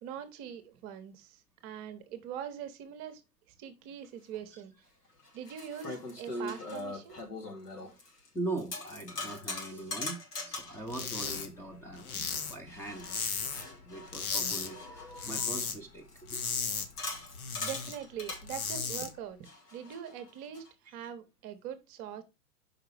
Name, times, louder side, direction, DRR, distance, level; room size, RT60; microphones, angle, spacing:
voice 1, 0.0-3.2 3.6-4.7 5.3-7.2 17.1-17.2 17.6-22.2, right 9 dB, 30° right, 1.0 m, -43 dB
sound 1, 4.3-4.4 5.2-8.3 8.6-10.8 12.7-15.6 16.1-18.4 19.4-20.7, left 2 dB, 80° left, 3.1 m, -41 dB
voice 2, 8.3-10.2 10.5-13.1 13.5-16.1 16.3-16.4, right 2 dB, 5° left, 0.9 m, -41 dB
sound 2, 10.9-11.5 11.7-13.8 14.1-14.7 15.0-15.8 16.1-17.9 18.3-19.1, left 6 dB, 65° left, 1.6 m, -35 dB
5.8 x 5.1 x 4.9 m
figure-of-eight pair, 105°, 46 cm